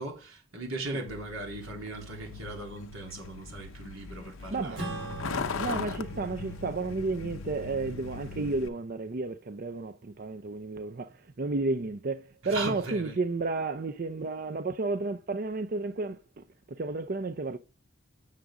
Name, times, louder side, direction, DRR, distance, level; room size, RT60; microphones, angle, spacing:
voice 1, 0.0-5.0 5.3-5.5 5.7-5.9 12.4-13.2, right 2 dB, 90° right, 3.4 m, -38 dB
Truck, 1.1-8.7, left 4 dB, 85° left, 0.6 m, -39 dB
voice 2, 4.5-4.9 5.6-17.6, right 3 dB, 45° right, 0.5 m, -32 dB
Acoustic guitar / Strum, 4.8-9.5, right 2 dB, 65° right, 4.2 m, -43 dB
7.5 x 6.9 x 3.6 m
head